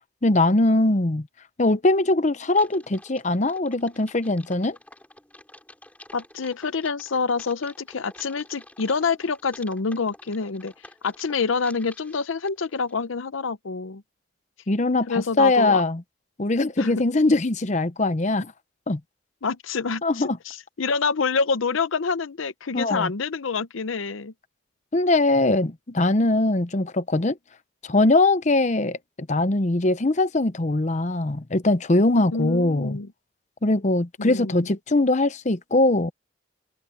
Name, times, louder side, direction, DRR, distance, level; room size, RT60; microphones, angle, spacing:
voice 1, 0.2-1.3 1.6-4.8 14.7-16.0 16.4-18.5 18.9-19.0 20.0-20.4 22.7-23.1 24.9-27.4 27.8-33.0 33.6-36.1, left 2 dB, 35° left, 0.8 m, -21 dB
Typing, 2.5-13.0, left 1 dB, 5° left, 4.5 m, -49 dB
voice 2, 6.1-10.7 11.0-14.0 15.1-15.8 16.8-17.0 19.4-24.3 32.3-33.1 34.2-34.7, left 4 dB, 80° left, 0.7 m, -27 dB
head